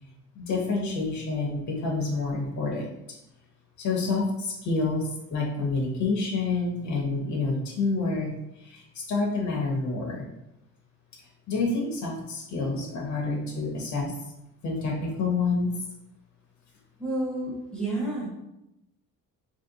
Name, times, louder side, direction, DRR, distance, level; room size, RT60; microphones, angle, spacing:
voice 1, 0.3-3.2 3.8-10.3 11.5-14.1 14.6-15.7, left 3 dB, 55° left, -1 dB, 0.9 m, -28 dB
voice 2, 17.0-18.3, right 1 dB, ahead, -5 dB, 1.0 m, -30 dB
2.9 x 2.8 x 3.9 m, 0.87 s
cardioid pair, 180°, 34 cm